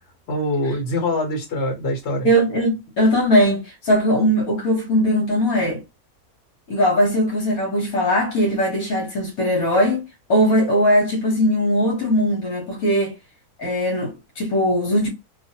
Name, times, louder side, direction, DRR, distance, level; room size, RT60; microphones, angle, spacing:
voice 1, 0.3-2.3, left 1 dB, 50° left, 1.3 m, -24 dB
voice 2, 2.2-5.8 6.7-13.2 13.6-15.1, equal, 70° left, 1.4 m, -20 dB
2.5 x 2.5 x 2.7 m
omnidirectional pair, 1.6 m